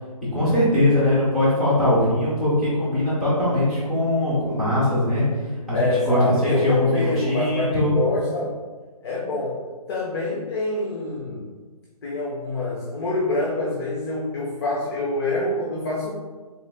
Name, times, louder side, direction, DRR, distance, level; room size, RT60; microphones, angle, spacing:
voice 1, 0.3-5.2 5.7-8.0, left 1 dB, ahead, -12 dB, 0.3 m, -21 dB
voice 2, 5.7-8.5 9.0-9.6 9.9-11.5 12.0-16.1, left 2 dB, 40° left, -5 dB, 0.7 m, -26 dB
3.9 x 2.4 x 3.4 m, 1.4 s
hypercardioid pair, 160°, 20 cm